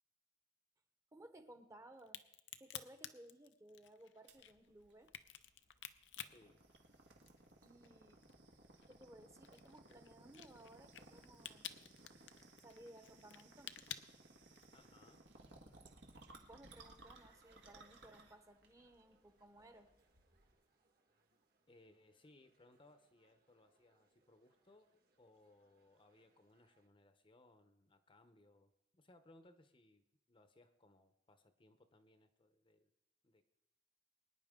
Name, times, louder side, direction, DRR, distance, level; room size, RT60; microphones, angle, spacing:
voice 1, 1.1-2.2 2.6-5.1 7.6-8.2 8.9-11.8 12.6-13.8 15.5-15.9 16.3-19.9, right 1 dB, 20° right, 8 dB, 0.9 m, -60 dB
Crack, 2.0-7.5 7.8-14.9, left 11 dB, 85° left, 0.6 m, -52 dB
sound 1, 4.3-20.6, right 2 dB, 85° right, 1.7 m, -62 dB
voice 2, 6.2-6.7 14.7-15.3 21.7-32.9 33.2-33.4, left 2 dB, 30° left, 9 dB, 0.7 m, -67 dB
sound 2, 15.7-26.9, right 2 dB, 55° right, 1.7 m, -77 dB
23.0 x 9.9 x 3.7 m, 0.89 s
head